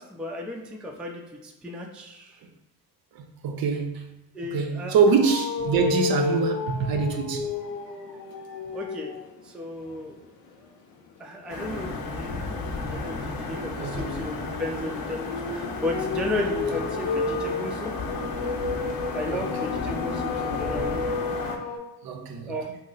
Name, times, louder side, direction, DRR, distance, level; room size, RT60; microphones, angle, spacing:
voice 1, 0.0-2.4 4.3-5.0 7.9-9.1 9.4-10.2 11.2-12.6 12.9-17.9 19.1-21.2 22.5-22.7, left 1 dB, ahead, 0.4 m, -34 dB
voice 2, 3.1-4.1 4.5-7.5 13.8-14.2 16.7-16.8 19.3-19.5 22.0-22.5, right 5 dB, 50° right, 0.6 m, -25 dB
sound 1, 5.2-9.4 9.8-10.1 12.5-21.8, left 4 dB, 85° left, 0.7 m, -32 dB
sound 2, 11.5-21.6, left 3 dB, 45° left, 0.7 m, -33 dB
2.8 x 2.0 x 3.9 m
hypercardioid pair, 60°, 49 cm